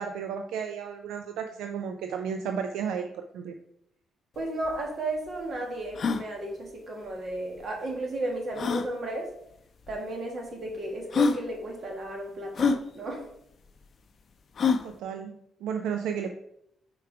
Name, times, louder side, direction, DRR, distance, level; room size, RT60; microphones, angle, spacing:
voice 1, 0.0-3.5 14.8-16.3, right 7 dB, 85° right, 6 dB, 0.4 m, -33 dB
sound 1, 4.4-4.5 4.6-4.7 5.3-5.4 5.9-6.2 7.6-7.7 8.5-8.9 9.9-10.0 10.7-10.8 11.1-11.4 12.5-12.8 14.6-14.9, left 5 dB, 55° left, 0.5 m, -25 dB
voice 2, 4.4-9.3 9.9-13.2, right 1 dB, 55° right, 0 dB, 1.8 m, -34 dB
4.7 x 4.6 x 4.8 m, 0.76 s
cardioid pair, 75°, 0 cm